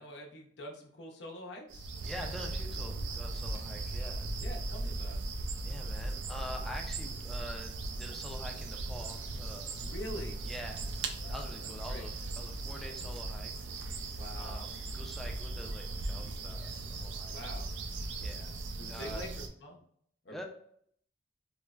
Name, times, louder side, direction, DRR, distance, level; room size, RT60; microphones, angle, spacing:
voice 1, 0.0-1.9 4.4-5.2 9.8-10.4 11.2-12.1 14.2-14.7 17.3-17.7 18.8-19.8 20.2-20.4, left 1 dB, 70° left, 0 dB, 0.7 m, -45 dB
sound 1, 1.7-19.5, right 2 dB, 85° right, 0.4 m, -38 dB
voice 2, 2.0-4.3 5.6-9.8 10.4-13.5 14.4-17.4 18.2-18.5 18.9-19.2 20.3-20.4, equal, ahead, 1 dB, 0.4 m, -46 dB
3.3 x 2.0 x 2.3 m, 0.65 s
head